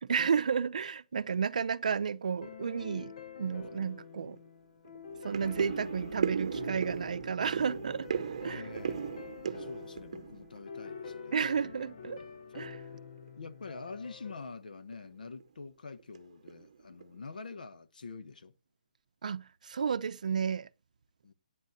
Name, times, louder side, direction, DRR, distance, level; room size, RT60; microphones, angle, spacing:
voice 1, 0.0-3.1 3.4-4.4 5.2-8.1 8.4-8.6 11.3-12.2 12.5-12.8 19.2-20.7, right 6 dB, 65° right, 0.6 m, -32 dB
sound 1, 2.4-14.4, left 6 dB, 50° left, 0.8 m, -47 dB
sound 2, 3.8-3.9 4.3-4.5 4.8-11.4 11.7-12.3 12.7-12.9 13.2-13.3 13.7-13.9 14.3-14.4 14.9-15.4 16.0-16.2 16.5-17.2 17.5-17.6, right 7 dB, 50° right, 0.9 m, -37 dB
voice 2, 8.4-11.8 12.9-13.1 13.4-18.5 21.2-21.3, left 4 dB, 85° left, 1.0 m, -46 dB
17.0 x 9.2 x 2.7 m
hypercardioid pair, 170°, 4 cm